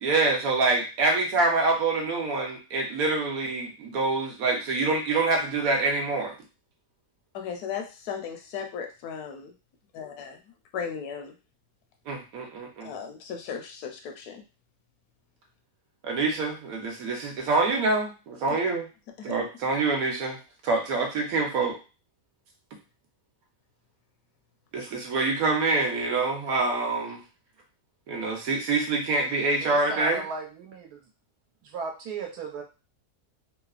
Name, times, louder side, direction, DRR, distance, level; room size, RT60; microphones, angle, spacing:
voice 1, 0.0-6.3 12.1-12.9 16.0-18.9 19.2-21.8 24.7-27.2 28.1-30.2, right 3 dB, 70° right, 2 dB, 1.1 m, -26 dB
voice 2, 7.3-9.5 9.9-10.4 10.7-11.3 12.8-14.4 19.2-19.3, left 7 dB, 80° left, 3 dB, 1.1 m, -36 dB
voice 3, 29.6-31.0 31.7-32.6, right 4 dB, 90° right, 1 dB, 1.3 m, -36 dB
3.1 x 2.0 x 2.3 m, 0.31 s
omnidirectional pair, 1.6 m